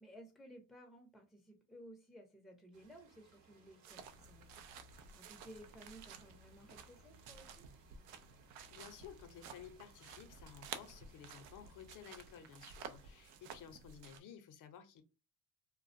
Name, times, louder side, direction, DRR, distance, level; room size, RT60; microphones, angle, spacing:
voice 1, 0.0-7.7, right 1 dB, ahead, 0.6 m, -57 dB
sound 1, 2.7-13.5, right 5 dB, 55° right, 1.0 m, -68 dB
sound 2, 3.8-14.2, right 7 dB, 75° right, 0.5 m, -53 dB
sound 3, 4.0-12.0, left 5 dB, 90° left, 0.5 m, -66 dB
voice 2, 8.7-15.0, left 8 dB, 55° left, 0.7 m, -55 dB
2.3 x 2.2 x 2.5 m
supercardioid pair, 80°, 37 cm